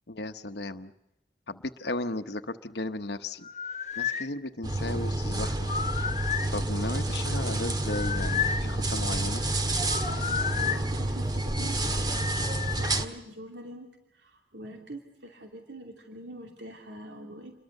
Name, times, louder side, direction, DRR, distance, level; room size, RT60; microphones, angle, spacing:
voice 1, 0.1-0.9 1.5-3.5 4.0-5.7 6.5-9.5, left 2 dB, 65° left, 8 dB, 1.1 m, -35 dB
sound 1, 3.4-4.3 5.6-6.5 7.8-8.7 9.9-10.8 12.1-13.0, left 7 dB, 40° left, 1.0 m, -32 dB
sound 2, 4.6-13.1, right 1 dB, 25° right, 1.8 m, -29 dB
voice 2, 10.0-12.5 12.7-13.9 14.1-17.6, right 1 dB, 80° right, 3 dB, 2.8 m, -44 dB
28.5 x 22.5 x 6.7 m, 0.88 s
head